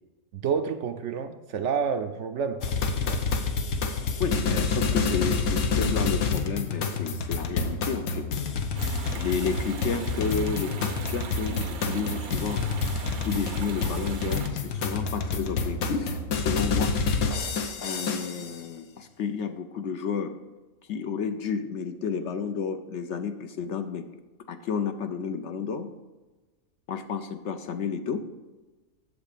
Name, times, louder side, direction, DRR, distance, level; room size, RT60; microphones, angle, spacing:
voice 1, 0.3-2.7 3.0-3.2, right 6 dB, 65° right, 8 dB, 0.8 m, -29 dB
sound 1, 2.6-18.5, left 4 dB, 80° left, 1.4 m, -28 dB
voice 2, 4.2-8.3 9.2-12.6 13.3-16.9 17.8-20.3 20.9-24.0 24.5-25.9 26.9-28.2, left 6 dB, 65° left, 8 dB, 0.8 m, -31 dB
sound 2, 8.7-14.5, right 6 dB, 85° right, 1.3 m, -40 dB
8.2 x 7.3 x 5.1 m, 1.2 s
omnidirectional pair, 1.5 m